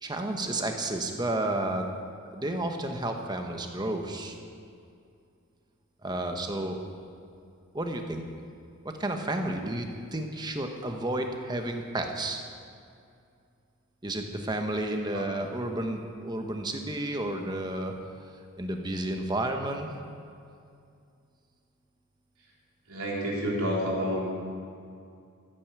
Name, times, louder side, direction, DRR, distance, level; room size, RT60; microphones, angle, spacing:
voice 1, 0.0-1.9 2.3-4.4 6.0-6.8 7.7-8.2 8.8-9.9 10.1-12.4 14.0-17.9 18.6-19.9, right 1 dB, 20° right, 4 dB, 1.1 m, -31 dB
voice 2, 22.9-24.3, equal, 85° right, -4 dB, 3.8 m, -29 dB
15.0 x 9.3 x 6.7 m, 2.4 s
head